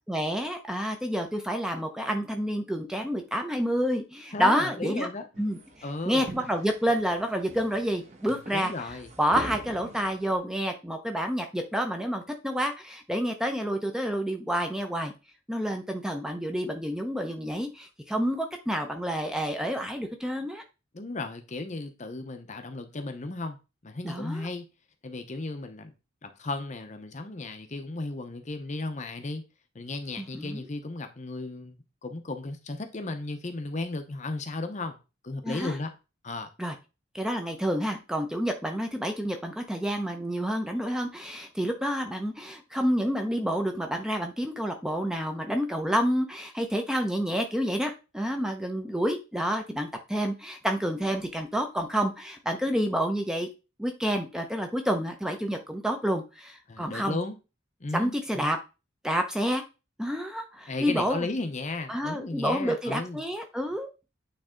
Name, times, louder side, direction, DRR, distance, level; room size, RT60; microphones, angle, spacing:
voice 1, 0.1-5.1 5.4-5.6 6.1-8.7 9.2-15.1 15.5-20.6 24.0-24.5 30.2-30.6 35.4-35.8 36.6-36.7 37.1-53.5 53.8-57.2 57.9-58.6 59.0-59.6 60.0-61.3 61.9-63.9, equal, 5° right, 0.6 m, -29 dB
voice 2, 4.3-5.3 5.8-6.3 8.5-9.1 20.9-23.6 23.8-24.6 25.0-25.9 26.2-29.4 29.7-31.7 32.0-35.0 35.2-35.9 36.2-36.5 56.7-57.3 57.8-58.5 60.7-63.2, left 2 dB, 35° left, 0.7 m, -35 dB
sound 1, 5.3-10.4, right 1 dB, 35° right, 1.1 m, -43 dB
8.9 x 3.3 x 3.7 m
head